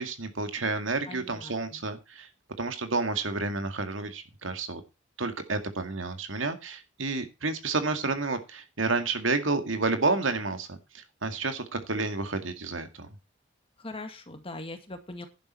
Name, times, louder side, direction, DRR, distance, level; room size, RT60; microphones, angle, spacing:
voice 1, 0.0-2.3 2.6-4.8 5.2-13.1, right 3 dB, 85° right, 8 dB, 2.1 m, -30 dB
voice 2, 1.1-1.8 13.8-15.3, left 2 dB, 30° left, 7 dB, 2.0 m, -41 dB
11.5 x 11.0 x 4.3 m, 0.26 s
head